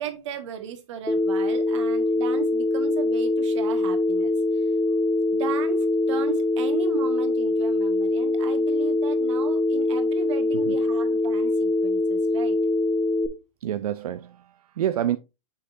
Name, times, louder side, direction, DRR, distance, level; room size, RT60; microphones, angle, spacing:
voice 1, 0.0-4.3 5.3-12.6, right 9 dB, 50° right, 1.4 m, -36 dB
Telephone, 1.1-13.3, left 2 dB, 5° left, 0.6 m, -23 dB
voice 2, 13.6-15.2, right 11 dB, 75° right, 0.5 m, -28 dB
6.7 x 5.8 x 2.5 m
hypercardioid pair, 145°, 19 cm